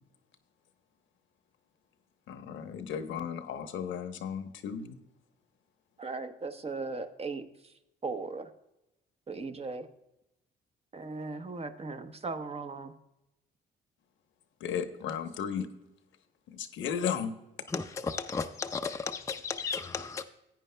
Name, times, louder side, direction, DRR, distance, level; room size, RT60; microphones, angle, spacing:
voice 1, 2.3-5.0 14.6-15.7 16.5-17.3, left 7 dB, 75° left, 0.9 m, -35 dB
voice 2, 6.0-7.7 8.0-8.5 9.3-9.9 10.9-12.9, right 3 dB, 30° right, 0.8 m, -38 dB
voice 3, 17.7-20.2, left 5 dB, 15° left, 0.5 m, -34 dB
15.0 x 9.1 x 2.2 m
cardioid pair, 90°, 20 cm